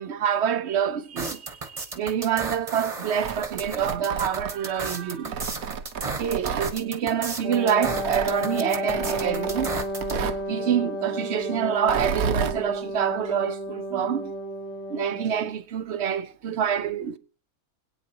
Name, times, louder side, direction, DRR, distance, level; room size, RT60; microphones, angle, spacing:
voice 1, 0.0-5.5 6.2-9.8 10.5-14.3 14.9-17.2, right 8 dB, 55° right, 0.9 m, -26 dB
sound 1, 1.2-10.1, right 3 dB, 25° right, 1.2 m, -34 dB
Tearing, 3.0-4.8 5.3-6.7 7.8-8.3 8.9-10.4 11.8-12.6, right 6 dB, 70° right, 1.3 m, -31 dB
Wind instrument woodwind instrument, 7.4-15.5, equal, 60° left, 2.0 m, -32 dB
25.5 x 9.0 x 2.9 m
omnidirectional pair, 1.5 m